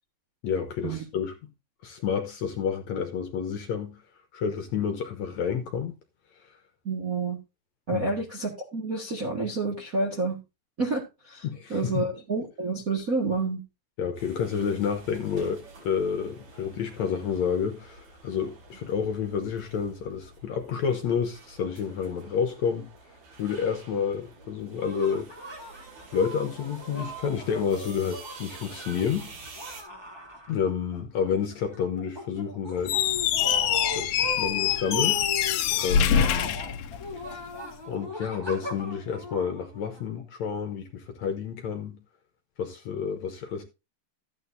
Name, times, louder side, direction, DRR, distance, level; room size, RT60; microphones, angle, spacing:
voice 1, 0.4-1.5 1.8-4.0 4.3-5.9 7.9-8.1 11.4-12.1 14.0-22.9 23.4-25.3 26.1-29.3 30.5-33.0 33.9-35.2 35.7-36.6 37.9-42.0 42.6-43.6, left 7 dB, 65° left, 2.0 m, -29 dB
voice 2, 6.8-7.4 7.9-10.4 10.8-13.6, right 3 dB, 40° right, 1.2 m, -29 dB
sound 1, 14.2-29.8, right 3 dB, 90° right, 5.9 m, -49 dB
sound 2, 24.8-31.0 31.2-40.2, equal, 10° right, 1.2 m, -39 dB
Squeak, 32.8-37.4, left 9 dB, 90° left, 1.6 m, -25 dB
13.5 x 9.1 x 2.7 m
omnidirectional pair, 4.2 m